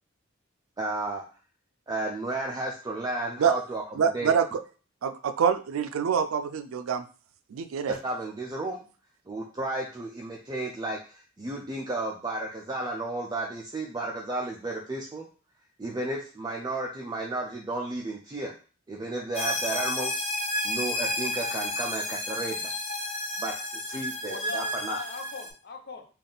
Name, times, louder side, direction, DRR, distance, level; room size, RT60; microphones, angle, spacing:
voice 1, 0.8-1.2 1.9-4.3 7.9-8.8 9.3-15.3 15.8-18.5 18.9-20.2 20.6-22.7 23.4-25.0, right 2 dB, 20° right, -1 dB, 0.4 m, -33 dB
voice 2, 4.0-4.6 5.0-7.0 7.5-7.9, right 7 dB, 90° right, 10 dB, 0.4 m, -25 dB
sound 1, 19.3-25.5, left 1 dB, 30° left, 0.9 m, -31 dB
voice 3, 23.9-26.1, left 3 dB, 55° left, 5 dB, 0.7 m, -40 dB
3.5 x 2.4 x 3.8 m, 0.38 s
head